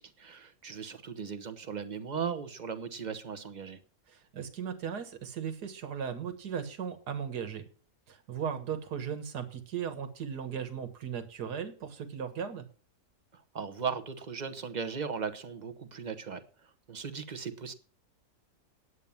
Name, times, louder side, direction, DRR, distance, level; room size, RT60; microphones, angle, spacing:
voice 1, 0.0-3.8 13.3-17.7, right 6 dB, 30° right, 9 dB, 1.0 m, -38 dB
voice 2, 4.1-7.6 8.1-12.6, right 7 dB, 70° right, 9 dB, 2.0 m, -37 dB
9.6 x 9.2 x 7.1 m, 0.39 s
omnidirectional pair, 1.8 m